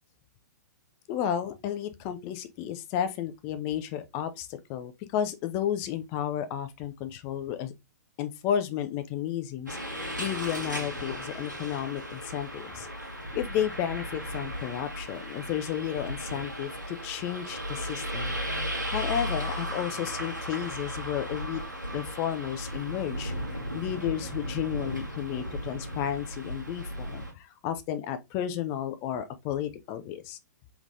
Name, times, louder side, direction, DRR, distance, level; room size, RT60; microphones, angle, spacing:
voice 1, 1.1-7.7 8.2-12.9 13.3-18.3 18.9-21.6 21.9-23.3 23.7-30.4, left 10 dB, 25° left, 0.5 m, -32 dB
sound 1, 9.7-27.3, equal, 85° right, 1.5 m, -36 dB
3.7 x 3.4 x 2.6 m
figure-of-eight pair, 115°, 10 cm